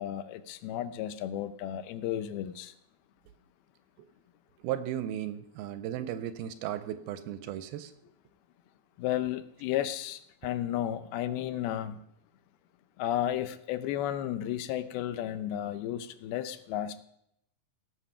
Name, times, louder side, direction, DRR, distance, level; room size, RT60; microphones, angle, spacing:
voice 1, 0.0-2.7 9.0-12.0 13.0-17.0, left 11 dB, 80° left, 12 dB, 2.5 m, -33 dB
voice 2, 4.6-7.9, right 11 dB, 80° right, 11 dB, 2.4 m, -35 dB
17.5 x 6.4 x 5.6 m, 0.77 s
omnidirectional pair, 4.5 m